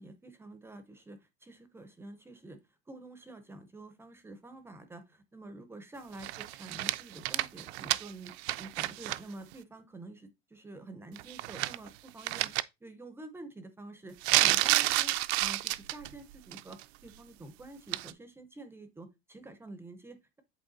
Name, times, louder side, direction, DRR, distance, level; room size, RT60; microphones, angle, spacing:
voice 1, 0.0-2.6 2.9-12.5 12.8-20.4, right 2 dB, 10° right, 0.4 m, -48 dB
sound 1, 6.2-9.2 9.5-9.6 11.2-11.9 12.2-12.6 14.2-16.1 16.5-16.8 17.9-18.1, right 18 dB, 70° right, 0.5 m, -30 dB
8.0 x 3.3 x 3.9 m
cardioid pair, 165°, 33 cm